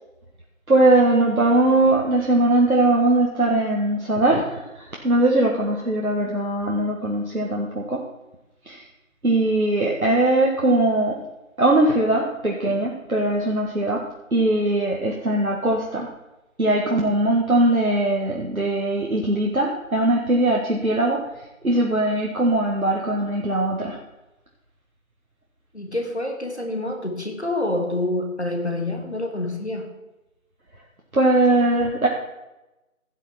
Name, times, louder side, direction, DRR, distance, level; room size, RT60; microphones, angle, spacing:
voice 1, 0.7-8.0 8.7-8.8 9.2-11.2 11.6-14.1 14.3-16.1 16.6-21.2 21.6-24.0 31.1-32.1, right 2 dB, 85° right, -2 dB, 1.9 m, -20 dB
voice 2, 25.7-29.9, left 1 dB, 50° left, 3 dB, 1.9 m, -27 dB
16.0 x 6.5 x 4.3 m, 1.0 s
figure-of-eight pair, 180°, 42 cm